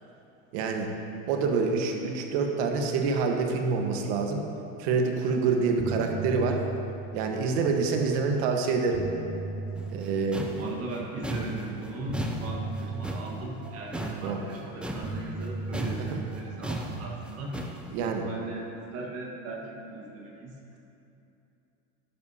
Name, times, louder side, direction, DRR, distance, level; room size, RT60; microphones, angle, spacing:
voice 1, 0.5-0.9 1.3-4.4 4.8-6.6 7.1-9.0 9.9-10.5 12.9-13.0 14.2-14.4 16.0-16.2 17.9-18.2, right 4 dB, 60° right, 3 dB, 1.4 m, -27 dB
sound 1, 5.1-5.4 5.6-8.0 8.6-11.1 12.1-14.5 15.0-17.6, right 3 dB, 20° right, 1.1 m, -37 dB
sound 2, 9.8-15.5 15.7-17.9, right 1 dB, 5° right, 0.4 m, -36 dB
voice 2, 10.6-17.6 17.9-20.6, right 2 dB, 40° right, -2 dB, 1.5 m, -38 dB
12.5 x 10.5 x 2.8 m, 2.8 s
supercardioid pair, 135°, 37 cm